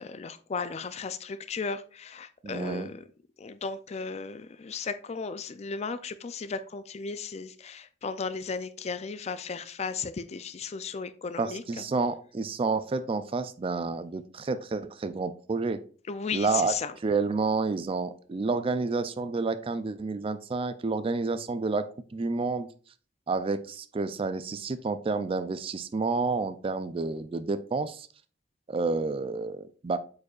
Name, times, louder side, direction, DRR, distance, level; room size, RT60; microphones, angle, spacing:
voice 1, 0.0-3.0 3.4-11.8 16.1-16.9, left 5 dB, 35° left, 0.4 m, -35 dB
voice 2, 2.4-2.9 11.4-15.8 16.3-16.7 17.0-22.7 23.3-28.1 28.7-30.0, right 3 dB, 30° right, 0.4 m, -29 dB
8.1 x 5.2 x 2.4 m
head